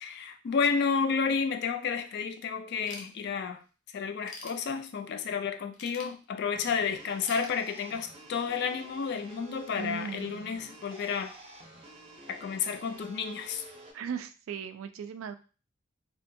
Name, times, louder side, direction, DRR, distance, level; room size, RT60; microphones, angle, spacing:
voice 1, 0.0-3.6 3.9-11.3 12.3-13.6, left 6 dB, 55° left, 8 dB, 0.3 m, -31 dB
Ratchet pawl / Tools, 2.9-3.7 4.0-5.2 5.7-6.7 7.2-8.2, left 3 dB, 90° left, 0.7 m, -47 dB
sound 1, 6.5-13.9, right 1 dB, 30° right, 0.5 m, -50 dB
voice 2, 9.8-10.6 13.9-15.3, right 6 dB, 80° right, 10 dB, 0.3 m, -38 dB
2.8 x 2.2 x 2.6 m, 0.34 s
head